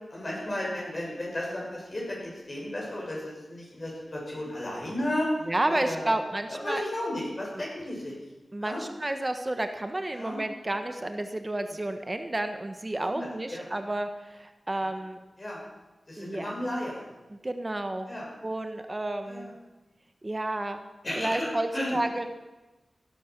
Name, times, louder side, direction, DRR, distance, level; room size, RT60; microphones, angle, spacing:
voice 1, 0.1-5.3 5.7-6.1 6.5-8.2 8.6-8.8 10.1-10.4 13.0-13.7 15.4-15.6 16.1-17.1 18.0-18.3 19.2-19.5 21.0-22.0, left 1 dB, 35° left, -3 dB, 6.4 m, -34 dB
voice 2, 5.4-6.8 7.5-7.6 8.5-15.2 16.2-16.5 17.3-18.1 18.4-19.5 20.2-20.8 21.1-22.3, right 1 dB, 25° right, 7 dB, 1.2 m, -31 dB
16.0 x 11.5 x 6.0 m, 1.1 s
wide cardioid pair, 115°, 0 cm